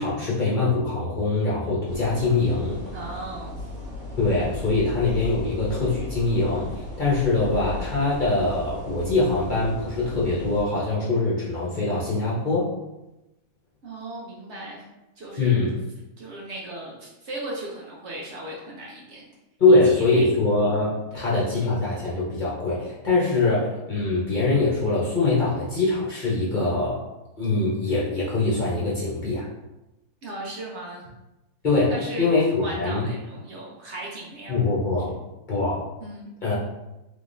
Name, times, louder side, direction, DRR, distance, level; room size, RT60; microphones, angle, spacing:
voice 1, 0.0-2.8 4.2-12.7 15.4-15.8 19.6-27.0 27.4-29.5 31.6-33.1 34.5-35.1 35.5-35.9 36.4-36.6, left 3 dB, 40° left, -7 dB, 0.9 m, -23 dB
sound 1, 1.9-10.6, left 2 dB, 80° right, 1.5 m, -36 dB
voice 2, 2.9-3.5 4.4-4.5 13.8-14.8 15.2-15.8 16.2-19.2 19.7-20.3 21.1-21.2 30.2-31.0 31.9-32.3 32.6-34.6 35.1-35.2 36.0-36.3, right 1 dB, 55° right, -3 dB, 1.0 m, -37 dB
3.7 x 3.4 x 2.6 m, 0.96 s
omnidirectional pair, 1.5 m